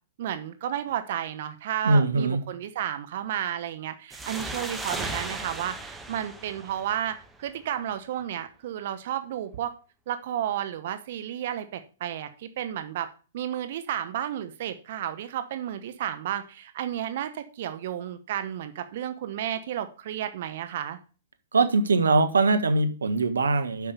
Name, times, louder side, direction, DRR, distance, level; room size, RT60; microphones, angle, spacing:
voice 1, 0.2-9.7 10.1-13.1 13.3-21.0, right 10 dB, 55° right, 9 dB, 1.0 m, -32 dB
voice 2, 1.8-2.4 21.5-23.9, right 3 dB, 80° right, 9 dB, 1.4 m, -22 dB
sound 1, 4.1-7.5, right 2 dB, 5° right, 1.3 m, -36 dB
8.3 x 5.7 x 6.7 m, 0.36 s
figure-of-eight pair, 115°, 0 cm